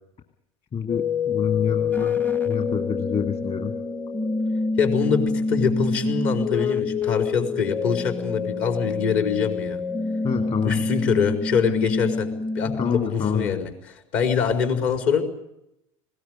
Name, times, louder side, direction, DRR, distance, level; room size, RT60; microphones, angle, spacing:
voice 1, 0.7-2.2 2.4-3.7 10.2-10.8 12.7-13.6, left 7 dB, 35° left, 4 dB, 2.7 m, -27 dB
sound 1, 0.9-12.9, left 4 dB, 10° left, 0.8 m, -26 dB
voice 2, 4.8-9.8 10.6-13.7 14.1-15.2, left 6 dB, 60° left, 6 dB, 4.7 m, -24 dB
20.5 x 18.0 x 9.8 m, 0.82 s
hypercardioid pair, 75°, 17 cm